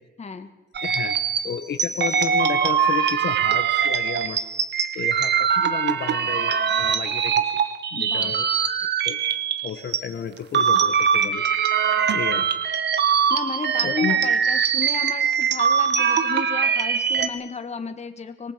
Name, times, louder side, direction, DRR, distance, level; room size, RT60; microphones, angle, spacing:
voice 1, 0.2-0.5 8.0-8.3 13.3-18.5, left 5 dB, 35° left, 7 dB, 1.9 m, -33 dB
sound 1, 0.7-10.0 10.4-17.3, right 7 dB, 60° right, 1.5 m, -22 dB
voice 2, 0.8-1.2 1.4-4.4 4.9-7.6 7.9-8.5 9.0-9.2 9.6-11.4 12.1-12.4 13.8-14.2, left 7 dB, 60° left, 7 dB, 1.6 m, -32 dB
26.0 x 19.0 x 5.3 m, 1.0 s
cardioid pair, 90°, 20 cm